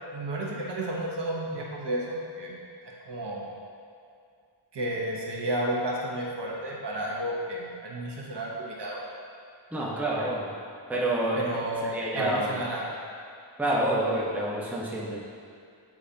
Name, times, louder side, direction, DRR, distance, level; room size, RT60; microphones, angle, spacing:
voice 1, 0.1-2.5 3.1-3.5 4.7-9.0 10.2-10.3 11.4-12.9, right 1 dB, 60° right, -3 dB, 1.1 m, -32 dB
voice 2, 9.7-10.5 10.9-11.4 11.8-12.6 13.6-15.2, right 1 dB, 5° right, -5 dB, 0.9 m, -28 dB
8.6 x 4.8 x 2.8 m, 2.3 s
wide cardioid pair, 95°, 47 cm